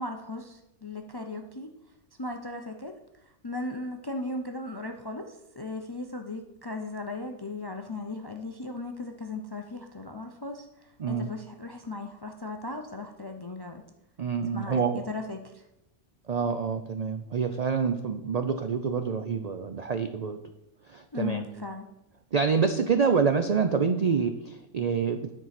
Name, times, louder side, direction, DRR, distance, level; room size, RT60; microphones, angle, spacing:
voice 1, 0.0-1.7 2.2-3.0 3.4-13.8 14.5-15.6 21.1-21.9, left 2 dB, 35° left, 5 dB, 0.4 m, -37 dB
voice 2, 14.2-15.0 16.3-20.4 20.9-21.4 22.3-25.3, right 5 dB, 65° right, 8 dB, 0.4 m, -27 dB
9.6 x 4.7 x 5.8 m, 0.90 s
omnidirectional pair, 1.3 m